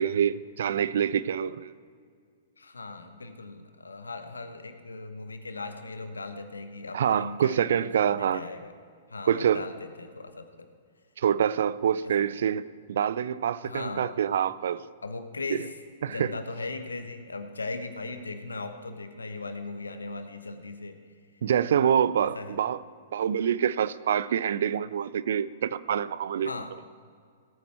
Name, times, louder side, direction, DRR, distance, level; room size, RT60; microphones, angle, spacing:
voice 1, 0.0-1.7 6.9-8.4 9.3-9.6 11.2-14.8 16.0-16.3 21.4-22.8 23.1-26.5, right 8 dB, 60° right, 17 dB, 0.4 m, -26 dB
voice 2, 2.6-8.7 9.1-10.7 12.0-12.2 13.6-14.2 15.0-15.7 16.1-21.0 22.2-22.6 26.4-26.7, left 3 dB, 80° left, 9 dB, 1.0 m, -38 dB
18.0 x 9.2 x 4.5 m, 2.1 s
figure-of-eight pair, 105°, 0 cm